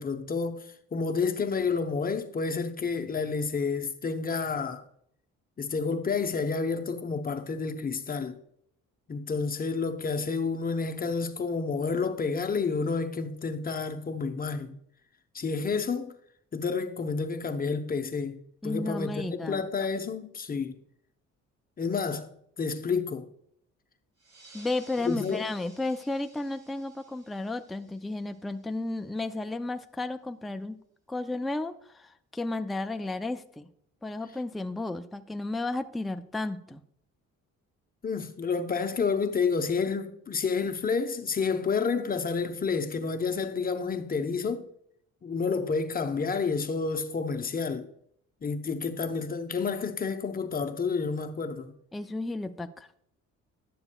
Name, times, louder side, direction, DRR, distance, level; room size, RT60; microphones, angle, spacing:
voice 1, 0.0-4.8 5.6-8.4 9.1-14.7 15.3-16.1 16.5-20.8 21.8-22.3 22.6-23.3 25.0-25.4 38.0-44.7 45.2-47.9 48.4-51.7, left 5 dB, 30° left, 0.7 m, -30 dB
voice 2, 18.6-19.7 24.5-30.8 31.1-33.7 34.0-36.8 51.9-52.9, left 2 dB, ahead, 0.3 m, -33 dB
sound 1, 24.2-29.2, right 3 dB, 75° right, 3.0 m, -56 dB
11.0 x 6.9 x 2.2 m
cardioid pair, 90°, 30 cm